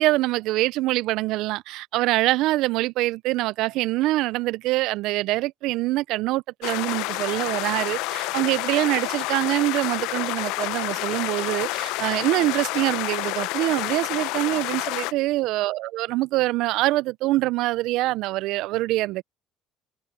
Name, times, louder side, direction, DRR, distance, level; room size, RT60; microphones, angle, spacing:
voice 1, 0.0-19.2, right 18 dB, 70° right, 0.5 m, -24 dB
sound 1, 6.6-15.1, left 21 dB, 75° left, 0.7 m, -29 dB
hypercardioid pair, 70°, 0 cm